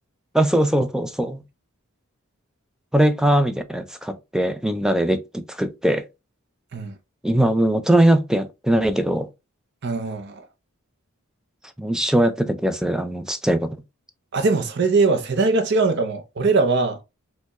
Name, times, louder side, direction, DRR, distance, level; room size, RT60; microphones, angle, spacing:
voice 1, 0.3-1.4 2.9-6.1 7.2-9.3 11.8-13.8, right 1 dB, 5° right, 0.3 m, -20 dB
voice 2, 9.8-10.3 14.3-17.0, right 3 dB, 50° right, 0.6 m, -21 dB
4.3 x 2.2 x 2.9 m
head